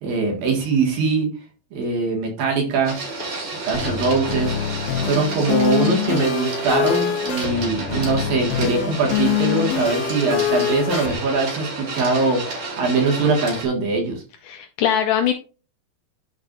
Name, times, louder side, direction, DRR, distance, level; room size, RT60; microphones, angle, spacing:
voice 1, 0.0-1.3 1.7-3.0 3.6-4.6 5.0-14.2, right 4 dB, 70° right, 0 dB, 3.6 m, -22 dB
Printer, 2.8-13.7, right 3 dB, 50° right, 3.3 m, -31 dB
sound 1, 3.7-11.1, left 9 dB, 70° left, 3.4 m, -25 dB
voice 2, 14.4-15.3, left 9 dB, 90° left, 6 dB, 1.8 m, -21 dB
12.5 x 4.8 x 2.6 m, 0.35 s
omnidirectional pair, 4.5 m